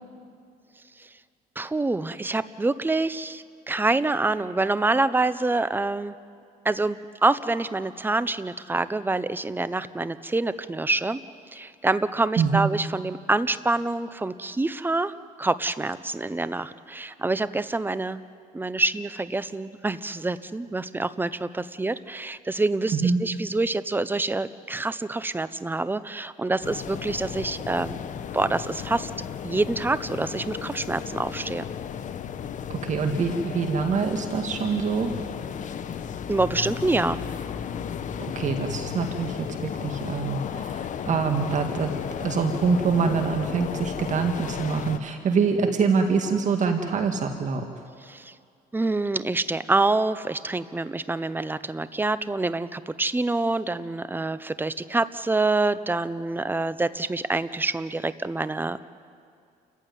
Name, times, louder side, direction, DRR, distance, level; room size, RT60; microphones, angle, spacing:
voice 1, 1.6-6.1 6.6-11.2 11.5-18.2 18.5-28.0 28.3-29.1 29.4-31.7 36.3-37.2 48.1-48.3 48.7-58.8, right 2 dB, 10° right, 15 dB, 0.8 m, -26 dB
voice 2, 12.4-12.7 22.9-23.2 32.7-35.1 38.2-39.5 39.8-47.6, right 5 dB, 45° right, 5 dB, 1.9 m, -25 dB
sound 1, 26.6-45.0, left 8 dB, 50° left, 1.1 m, -34 dB
29.0 x 15.0 x 9.4 m, 2.3 s
cardioid pair, 110°, 17 cm